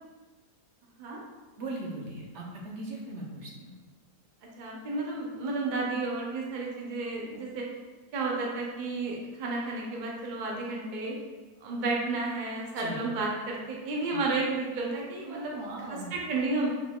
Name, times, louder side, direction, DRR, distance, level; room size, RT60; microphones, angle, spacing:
voice 1, 1.6-3.7 12.7-13.0 14.1-14.2 15.3-16.2, right 2 dB, 55° right, -2 dB, 0.8 m, -39 dB
voice 2, 4.4-7.7 8.1-11.2 11.6-15.6 15.9-16.7, right 3 dB, 75° right, -2 dB, 0.4 m, -32 dB
4.9 x 3.6 x 2.2 m, 1.3 s
omnidirectional pair, 1.7 m